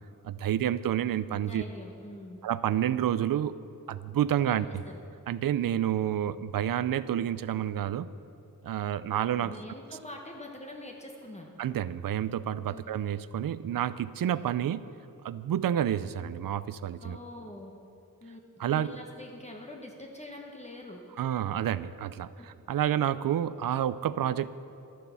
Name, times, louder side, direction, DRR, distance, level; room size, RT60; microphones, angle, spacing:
voice 1, 0.2-1.6 2.4-3.6 3.9-4.8 5.3-8.1 8.6-9.5 11.6-14.9 15.2-17.2 18.6-19.0 21.2-24.5, right 10 dB, 75° right, 16 dB, 0.5 m, -29 dB
voice 2, 1.4-2.4 4.4-5.0 9.4-11.5 12.6-12.8 17.0-17.7 18.2-18.4 18.6-21.0 22.4-22.5, left 1 dB, 20° left, 0 dB, 1.0 m, -44 dB
12.5 x 9.2 x 7.0 m, 2.7 s
wide cardioid pair, 145°, 34 cm